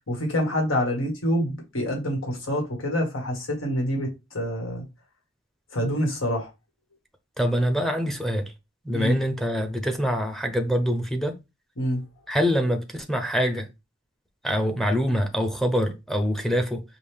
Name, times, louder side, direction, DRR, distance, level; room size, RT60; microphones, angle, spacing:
voice 1, 0.1-4.1 4.3-4.8 5.7-6.5 8.9-9.2 11.8-12.0, equal, 90° left, 1.8 m, -26 dB
voice 2, 7.4-8.5 8.8-11.4 12.3-13.7 14.4-16.8, equal, ahead, 0.5 m, -25 dB
5.3 x 2.5 x 3.4 m
head